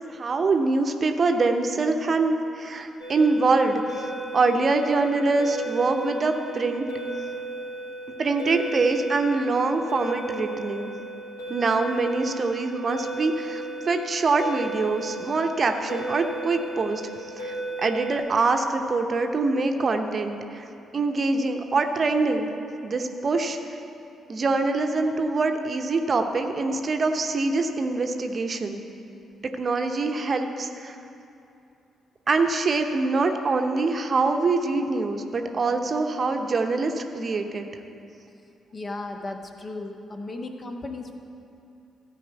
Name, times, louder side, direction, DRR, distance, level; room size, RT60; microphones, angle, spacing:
voice 1, 0.0-6.9 8.2-10.9 11.5-20.6 20.9-22.5 22.8-23.6 24.3-28.8 29.4-31.0 32.3-37.7, right 3 dB, 45° right, 5 dB, 0.8 m, -24 dB
sound 1, 3.0-18.2, right 2 dB, 80° left, 2.1 m, -35 dB
voice 2, 38.7-41.2, left 2 dB, 40° left, 3 dB, 1.2 m, -35 dB
14.5 x 5.0 x 8.0 m, 2.6 s
figure-of-eight pair, 40°, 0 cm